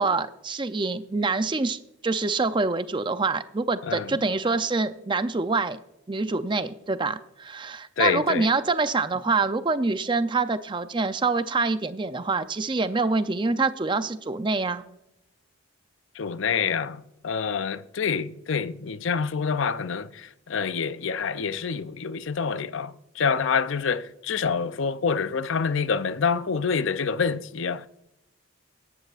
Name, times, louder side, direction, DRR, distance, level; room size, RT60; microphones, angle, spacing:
voice 1, 0.0-5.8 6.1-14.8, right 3 dB, 20° right, 0.5 m, -26 dB
voice 2, 3.8-4.2 8.0-8.5 16.1-27.9, left 6 dB, 60° left, 0.5 m, -27 dB
17.0 x 12.0 x 2.5 m
head